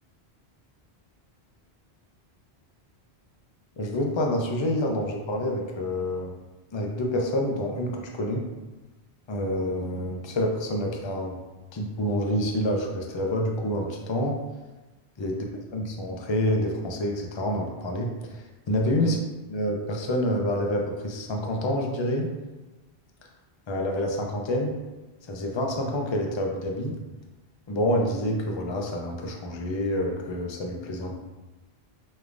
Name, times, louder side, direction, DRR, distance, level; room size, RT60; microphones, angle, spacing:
voice 1, 3.8-6.4 6.7-8.4 9.3-11.4 11.7-14.4 15.2-15.4 15.7-19.2 19.5-22.3 23.7-24.7 25.2-26.9 27.7-31.1, left 1 dB, 40° left, 1 dB, 0.4 m, -27 dB
5.0 x 3.1 x 2.5 m, 1.2 s
omnidirectional pair, 1.1 m